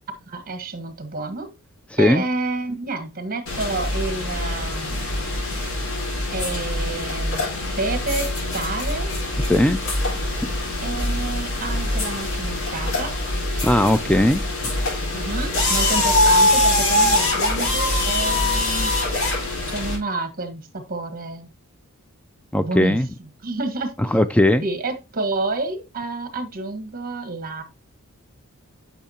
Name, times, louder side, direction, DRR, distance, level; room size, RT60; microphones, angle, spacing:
voice 1, 0.3-1.5 2.0-5.1 6.3-7.4 7.7-9.1 10.8-13.1 13.5-13.6 15.1-19.0 19.7-21.5 22.6-23.0 23.4-23.9 24.6-27.6, right 3 dB, 45° right, 1.4 m, -29 dB
voice 2, 1.9-2.2 9.5-9.8 13.6-14.4 22.5-23.1 24.0-24.6, left 1 dB, 5° left, 0.3 m, -18 dB
sound 1, 3.5-20.0, left 1 dB, 65° left, 4.4 m, -23 dB
10.0 x 6.2 x 2.8 m
head